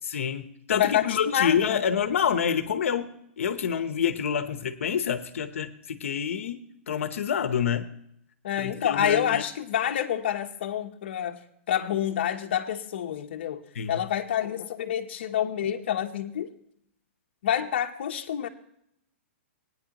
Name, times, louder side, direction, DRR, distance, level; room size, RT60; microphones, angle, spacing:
voice 1, 0.0-7.9 8.6-9.4 13.7-14.0, left 8 dB, 80° left, 10 dB, 0.8 m, -27 dB
voice 2, 0.7-1.8 8.4-11.4 11.7-13.6 13.9-16.5 17.4-18.5, left 10 dB, 50° left, 4 dB, 0.8 m, -27 dB
18.5 x 9.4 x 2.9 m, 0.75 s
hypercardioid pair, 175°, 7 cm